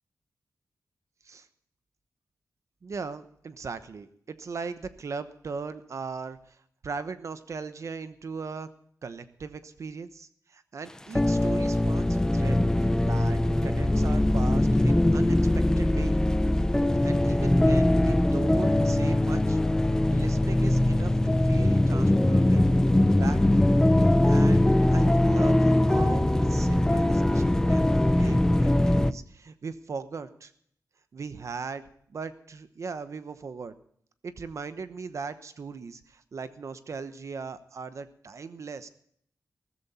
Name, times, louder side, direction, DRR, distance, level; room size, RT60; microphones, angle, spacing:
voice 1, 2.8-6.6 6.8-8.7 9.0-16.2 17.0-19.6 20.1-21.2 21.4-22.7 23.2-23.6 24.2-30.5 31.1-31.8 32.1-33.7 34.2-38.9, right 5 dB, 55° right, 11 dB, 1.0 m, -38 dB
sound 1, 11.1-29.1, left 1 dB, 10° left, 0.5 m, -22 dB
15.5 x 14.0 x 4.2 m, 0.64 s
wide cardioid pair, 160°, 6 cm